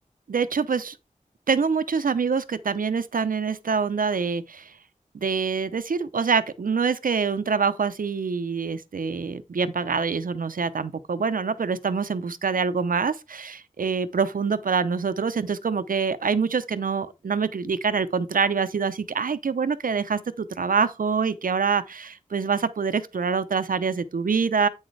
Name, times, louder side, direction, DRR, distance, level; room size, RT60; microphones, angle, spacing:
voice 1, 0.3-1.0 1.5-4.7 5.1-24.7, right 5 dB, 85° right, 0.7 m, -25 dB
8.8 x 6.4 x 3.3 m
wide cardioid pair, 80°, 14 cm